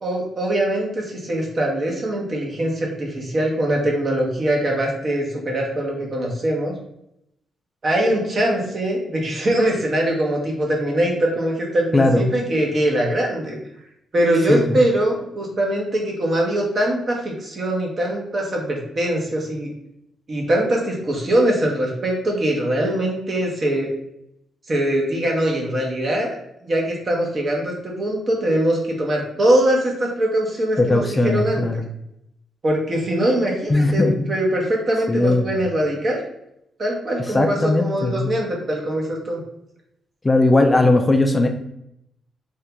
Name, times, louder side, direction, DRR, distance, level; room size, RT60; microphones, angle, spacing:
voice 1, 0.0-6.7 7.8-13.6 14.1-19.7 20.3-23.9 24.7-26.4 26.6-31.8 32.6-36.2 36.8-39.4, right 1 dB, 40° right, -1 dB, 0.9 m, -22 dB
voice 2, 11.9-12.3 14.5-14.8 30.8-31.9 33.7-34.3 35.1-35.5 37.3-38.3 40.2-41.5, left 2 dB, 15° left, 5 dB, 0.4 m, -18 dB
2.9 x 2.7 x 3.4 m, 0.79 s
cardioid pair, 120°, 0 cm